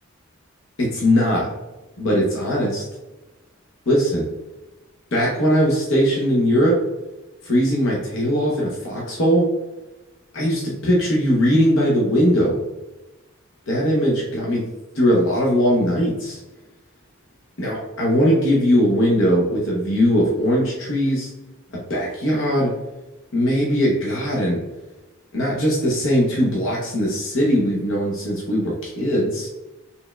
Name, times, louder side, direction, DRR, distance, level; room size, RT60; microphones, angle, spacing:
voice 1, 0.8-1.5 2.0-2.8 3.9-4.3 5.1-6.8 7.4-9.5 10.3-12.6 13.7-14.6 14.9-16.4 17.6-21.3 21.9-22.7 23.3-24.6 25.3-29.5, equal, 60° left, -3 dB, 0.8 m, -20 dB
4.2 x 3.5 x 2.2 m, 1.1 s
head